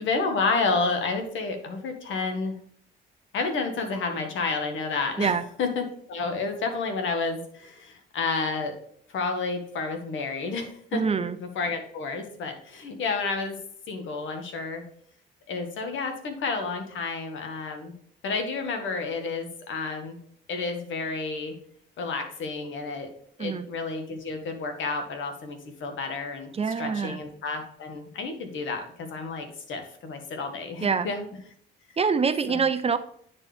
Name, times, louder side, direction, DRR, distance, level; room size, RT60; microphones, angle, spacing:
voice 1, 0.0-2.5 3.3-5.3 5.6-8.7 9.1-13.6 13.9-14.8 15.5-17.9 18.2-20.2 20.5-21.5 22.0-23.1 23.4-31.3 32.5-32.6, left 4 dB, 75° left, 5 dB, 1.5 m, -30 dB
voice 2, 10.9-11.4 23.4-23.7 26.5-27.2 30.8-31.1 32.0-33.0, right 5 dB, 30° right, 11 dB, 0.6 m, -25 dB
9.7 x 4.5 x 3.4 m, 0.63 s
cardioid pair, 90°, 20 cm